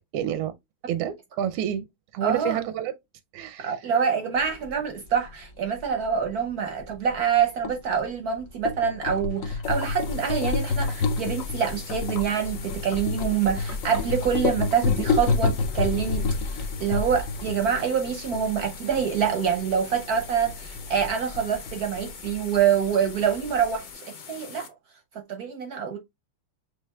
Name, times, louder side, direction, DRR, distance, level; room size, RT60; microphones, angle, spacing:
voice 1, 0.1-0.6 0.9-1.9 2.1-2.9 3.3-3.9, right 10 dB, 85° right, 1.5 m, -29 dB
voice 2, 2.2-2.6 3.6-24.7 25.1-26.0, right 7 dB, 65° right, 0.9 m, -26 dB
sound 1, 4.4-23.9, left 4 dB, 75° left, 0.7 m, -30 dB
sound 2, 9.6-24.7, left 6 dB, 60° left, 1.6 m, -43 dB
6.4 x 3.3 x 2.2 m
omnidirectional pair, 2.3 m